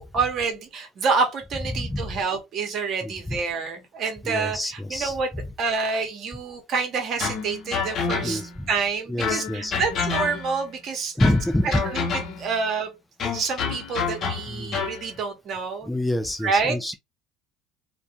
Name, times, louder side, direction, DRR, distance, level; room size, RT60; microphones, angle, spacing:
voice 1, 0.0-5.3 5.6-11.2 11.6-12.9 13.2-15.9 16.4-16.8, right 4 dB, 50° right, 0.9 m, -28 dB
voice 2, 1.7-2.0 3.0-3.4 4.2-5.2 8.2-8.5 9.1-9.7 11.2-11.8 14.5-14.8 15.8-16.9, left 1 dB, 5° left, 0.3 m, -26 dB
sound 1, 7.2-8.6 9.2-10.7 11.2-12.6 13.2-15.0, left 5 dB, 50° left, 0.7 m, -28 dB
2.4 x 2.2 x 2.7 m
supercardioid pair, 85°, 0 cm